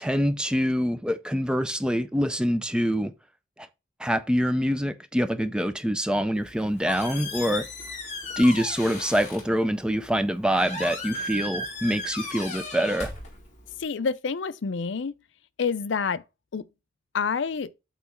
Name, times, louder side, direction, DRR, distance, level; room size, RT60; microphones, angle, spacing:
voice 1, 0.0-3.1 4.0-7.7 8.4-13.1, equal, 5° right, 0.4 m, -25 dB
Squeak, 6.4-13.8, left 2 dB, 35° left, 2.1 m, -36 dB
voice 2, 13.8-15.1 15.6-16.2 16.5-16.7 17.1-17.7, left 5 dB, 70° left, 0.5 m, -28 dB
8.3 x 3.0 x 5.6 m
head